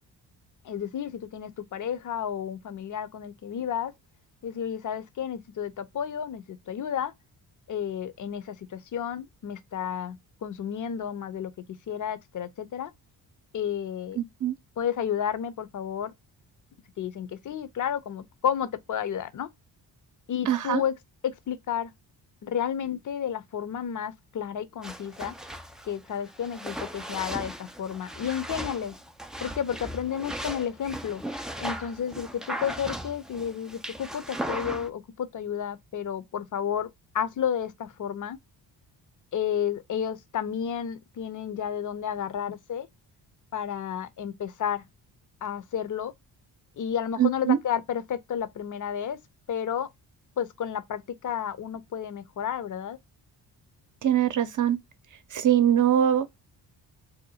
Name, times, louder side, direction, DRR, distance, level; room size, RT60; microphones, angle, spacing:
voice 1, 0.6-3.9 4.4-7.1 7.7-11.5 11.9-12.9 13.5-14.2 14.8-16.1 17.0-19.5 20.3-20.9 21.2-21.9 22.4-25.3 25.8-28.9 29.4-31.2 31.6-36.9 37.1-38.4 39.3-42.9 43.5-44.8 45.4-46.1 46.8-49.2 49.5-49.9 50.4-53.0, left 8 dB, 45° left, 0.6 m, -31 dB
voice 2, 14.2-14.5 20.5-20.8 47.2-47.6 54.0-54.8 55.3-56.4, right 10 dB, 45° right, 0.7 m, -23 dB
sound 1, 24.8-34.9, equal, ahead, 0.3 m, -37 dB
2.8 x 2.2 x 4.0 m
supercardioid pair, 65°, 44 cm